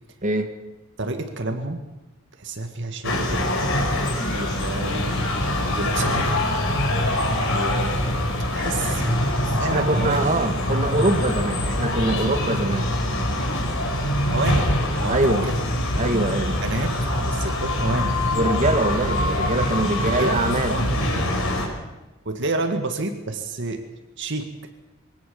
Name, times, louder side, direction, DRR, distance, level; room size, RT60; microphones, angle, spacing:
voice 1, 1.0-1.9 2.4-3.6 4.3-5.2 5.8-6.4 7.4-8.2 8.5-10.2 14.3-14.7 15.0-15.5 16.0-18.2 20.0-20.4 20.7-21.3 22.3-23.9 24.2-24.5, right 2 dB, 60° right, 6 dB, 2.0 m, -29 dB
sound 1, 3.0-21.7, left 1 dB, 65° left, 5.2 m, -24 dB
voice 2, 9.7-12.9 15.1-15.5 16.0-16.5 18.4-20.8, right 2 dB, 35° right, 5 dB, 2.2 m, -23 dB
23.5 x 17.5 x 7.1 m, 1.1 s
head